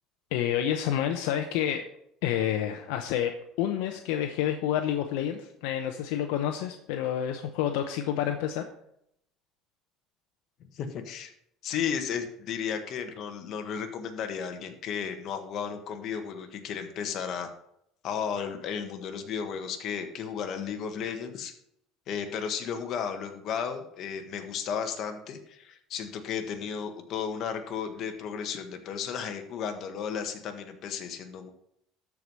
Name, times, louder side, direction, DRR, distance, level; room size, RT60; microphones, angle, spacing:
voice 1, 0.3-1.8 2.2-3.3 3.6-8.7, left 10 dB, 85° left, 6 dB, 0.8 m, -29 dB
voice 2, 10.7-11.3 11.6-17.5 18.0-21.5 22.1-31.5, left 7 dB, 50° left, 6 dB, 1.5 m, -34 dB
13.0 x 4.8 x 5.4 m, 0.74 s
cardioid pair, 135°, 0 cm